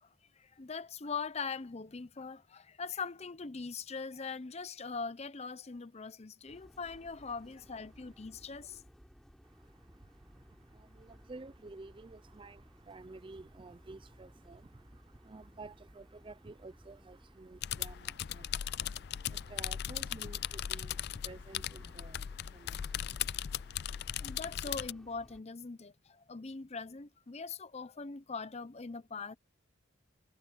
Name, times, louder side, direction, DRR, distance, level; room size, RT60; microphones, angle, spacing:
voice 1, 0.0-8.8 24.2-29.4, left 4 dB, 30° left, 0.7 m, -42 dB
sound 1, 6.5-25.4, equal, ahead, 4.6 m, -59 dB
voice 2, 9.4-24.1, right 3 dB, 25° right, 0.4 m, -52 dB
sound 2, 17.6-24.9, left 11 dB, 55° left, 0.4 m, -38 dB
head